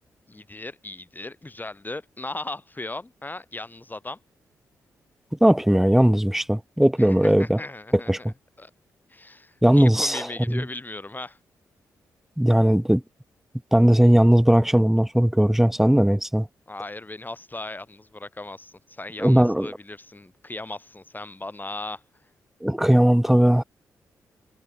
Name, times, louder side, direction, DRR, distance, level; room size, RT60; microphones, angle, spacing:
voice 1, 0.3-4.2 7.1-8.3 8.6-8.7 9.1-11.4 16.7-22.0, left 2 dB, 25° left, 4.2 m, -37 dB
voice 2, 5.4-7.6 7.9-8.3 9.6-10.6 12.4-13.0 13.7-16.5 19.2-19.7 22.6-23.6, equal, 5° right, 0.7 m, -18 dB
supercardioid pair, 45°, 8 cm